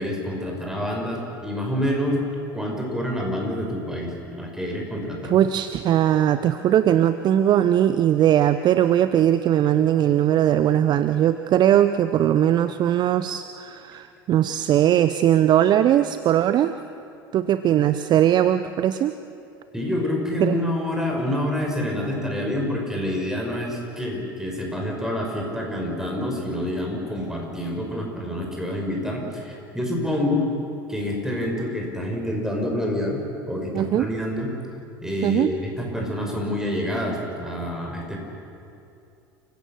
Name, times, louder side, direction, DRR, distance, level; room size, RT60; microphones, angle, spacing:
voice 1, 0.0-2.2 2.5-5.4 19.7-30.5 30.9-34.5 35.0-38.2, left 1 dB, 5° right, 0 dB, 5.7 m, -27 dB
voice 2, 5.2-16.7 17.3-19.1 20.4-20.6 33.7-34.1 35.2-35.5, right 11 dB, 35° right, 12 dB, 0.6 m, -20 dB
29.0 x 16.5 x 6.6 m, 2.6 s
figure-of-eight pair, 75°, 12 cm